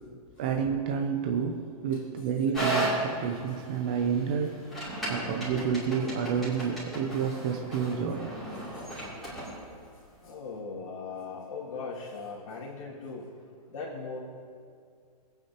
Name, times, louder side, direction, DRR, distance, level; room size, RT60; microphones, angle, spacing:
voice 1, 0.4-4.6 5.1-8.3, right 6 dB, 15° right, 2 dB, 0.3 m, -29 dB
sound 1, 2.5-9.6, right 1 dB, ahead, 2.7 m, -34 dB
voice 2, 9.9-13.3 13.7-14.2, left 4 dB, 55° left, -6 dB, 2.1 m, -39 dB
20.0 x 8.7 x 2.9 m, 2.2 s
hypercardioid pair, 175°, 21 cm